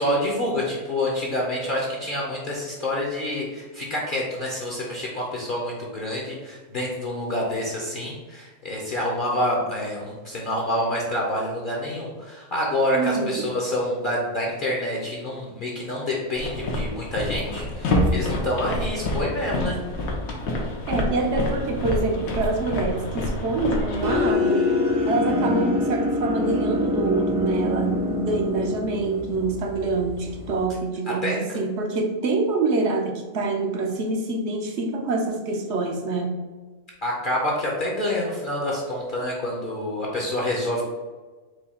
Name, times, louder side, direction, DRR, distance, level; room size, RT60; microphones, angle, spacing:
voice 1, 0.0-19.8 31.1-31.6 37.0-40.8, left 1 dB, 50° left, -3 dB, 0.7 m, -27 dB
voice 2, 12.9-13.4 20.9-24.7 25.1-36.4, right 3 dB, 65° right, 3 dB, 0.8 m, -26 dB
sound 1, 16.4-24.3, left 1 dB, 80° left, 1.2 m, -27 dB
sound 2, 24.0-30.6, left 2 dB, 40° right, 0.4 m, -25 dB
4.7 x 2.2 x 4.1 m, 1.3 s
omnidirectional pair, 1.5 m